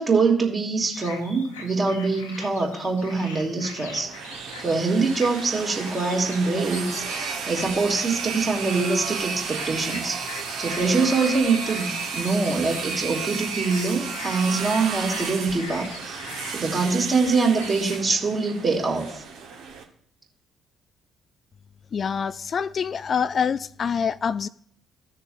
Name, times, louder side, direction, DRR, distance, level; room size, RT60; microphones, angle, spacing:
voice 1, 0.0-4.1 4.6-16.2 16.5-19.2, right 4 dB, 35° right, 2.5 m, -24 dB
sound 1, 0.9-18.1, left 3 dB, 80° left, 1.1 m, -42 dB
sound 2, 3.9-19.8, right 5 dB, 65° right, 1.3 m, -33 dB
voice 2, 21.9-24.5, left 6 dB, 45° left, 0.3 m, -26 dB
15.0 x 6.6 x 2.6 m
figure-of-eight pair, 45°, 0 cm